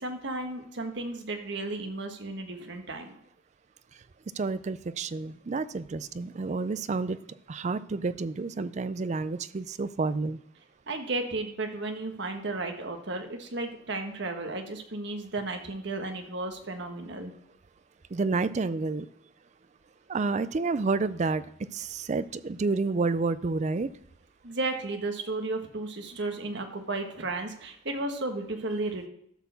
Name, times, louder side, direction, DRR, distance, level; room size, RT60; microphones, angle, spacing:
voice 1, 0.0-3.2 10.9-17.3 24.4-29.1, right 2 dB, 60° right, 5 dB, 1.4 m, -34 dB
voice 2, 4.4-7.2 7.5-10.4 18.1-19.1 20.1-21.4 21.7-23.9, right 3 dB, 35° right, 15 dB, 0.4 m, -29 dB
12.0 x 4.4 x 6.9 m, 0.71 s
head